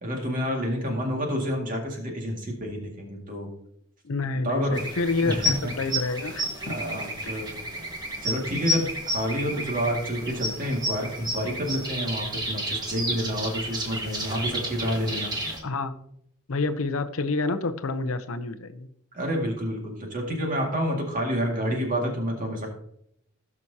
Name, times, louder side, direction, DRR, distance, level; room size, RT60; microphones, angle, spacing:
voice 1, 0.0-3.5 4.4-4.8 5.2-5.7 6.6-7.5 8.2-15.4 19.1-22.7, equal, 35° right, 0 dB, 2.0 m, -29 dB
voice 2, 4.0-5.4 5.7-6.7 7.2-7.4 15.6-15.9 16.5-18.9, left 3 dB, 70° left, 9 dB, 0.7 m, -28 dB
sound 1, 4.7-15.6, equal, 20° right, 1.5 m, -31 dB
17.0 x 6.1 x 2.8 m, 0.73 s
head